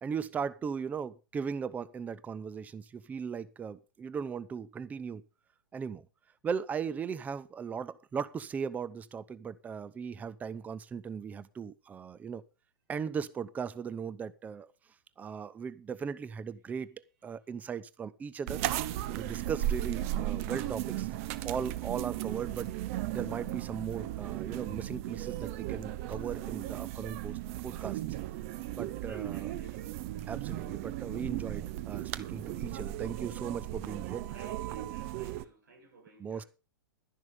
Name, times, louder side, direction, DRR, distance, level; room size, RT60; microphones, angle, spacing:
voice 1, 0.0-5.2 5.7-6.1 6.4-12.4 12.9-14.7 15.2-17.0 17.2-18.6 19.1-21.1 21.4-28.0 28.7-29.5 30.3-34.3 36.2-36.4, right 6 dB, 15° right, 0.7 m, -38 dB
sound 1, 18.5-35.4, right 14 dB, 40° right, 1.0 m, -36 dB
voice 2, 29.0-29.9 31.2-31.3 34.3-36.5, right 4 dB, 60° right, 7.7 m, -53 dB
12.0 x 11.0 x 5.3 m
figure-of-eight pair, 105°, 11 cm